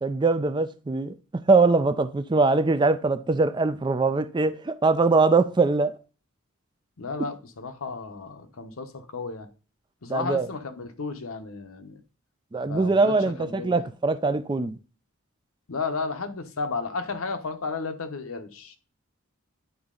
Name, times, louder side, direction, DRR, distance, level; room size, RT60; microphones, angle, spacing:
voice 1, 0.0-5.9 10.1-10.5 12.5-14.8, right 3 dB, 20° right, 0.3 m, -22 dB
voice 2, 7.0-9.5 10.0-12.0 12.6-13.9 15.7-18.8, left 4 dB, 80° left, 0.9 m, -33 dB
9.5 x 4.0 x 3.7 m
head